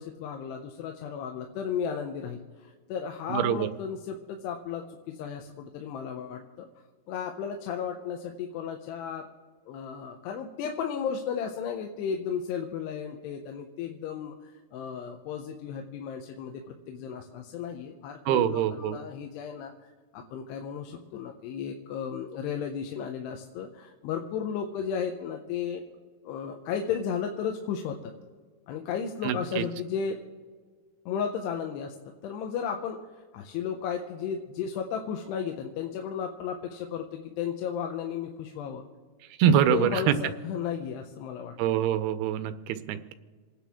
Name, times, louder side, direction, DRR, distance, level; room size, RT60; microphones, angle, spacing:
voice 1, 0.0-6.7 7.1-9.3 9.7-19.7 20.1-25.8 26.2-28.1 28.7-30.2 31.1-32.0 32.2-38.8 39.5-41.6, left 7 dB, 85° left, 3 dB, 2.9 m, -34 dB
voice 2, 3.3-3.7 18.3-19.0 29.2-29.6 39.4-40.1 41.6-42.5 42.9-43.1, right 9 dB, 80° right, 9 dB, 2.5 m, -24 dB
28.0 x 10.0 x 3.6 m, 1.5 s
omnidirectional pair, 4.8 m